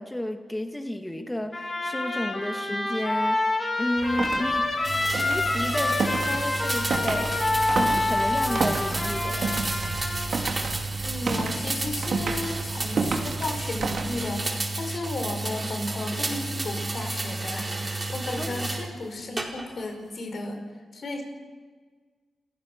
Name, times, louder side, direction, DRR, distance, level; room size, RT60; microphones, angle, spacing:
voice 1, 0.0-3.5 3.8-4.6 5.1-7.4 7.7-9.5 18.4-18.7, left 1 dB, 15° left, 4 dB, 2.5 m, -32 dB
Trumpet, 1.5-10.3, left 2 dB, 40° left, 7.3 m, -27 dB
sound 1, 4.0-14.5, right 4 dB, 65° right, 2.7 m, -32 dB
sound 2, 4.8-18.9 19.4-19.9, right 2 dB, 35° right, 4.6 m, -31 dB
voice 2, 11.0-20.6 20.9-21.2, left 2 dB, 60° left, 4 dB, 5.2 m, -34 dB
28.5 x 15.5 x 6.3 m, 1.5 s
supercardioid pair, 45°, 0 cm